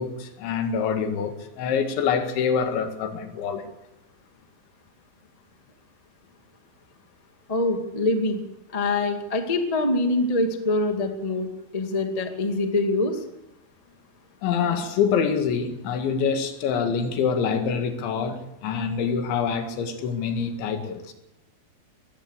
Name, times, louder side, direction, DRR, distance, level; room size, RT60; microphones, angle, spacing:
voice 1, 0.0-3.7 14.4-21.1, left 6 dB, 85° left, 4.4 m, -26 dB
voice 2, 7.5-8.4 8.7-13.2, left 2 dB, 45° left, 0.4 m, -24 dB
21.5 x 16.0 x 8.2 m
omnidirectional pair, 5.2 m